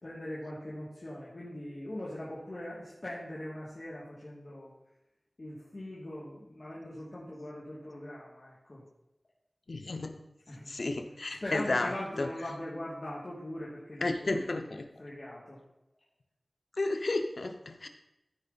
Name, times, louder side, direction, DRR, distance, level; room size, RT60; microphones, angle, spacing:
voice 1, 0.0-4.7 5.4-8.8 10.5-10.7 11.4-14.5 15.0-15.6, left 1 dB, 55° left, -7 dB, 2.3 m, -41 dB
voice 2, 9.7-10.2 10.7-12.5 14.0-14.8 16.8-17.9, left 2 dB, 85° left, 6 dB, 0.9 m, -32 dB
14.0 x 4.9 x 4.1 m, 0.89 s
wide cardioid pair, 50°, 0 cm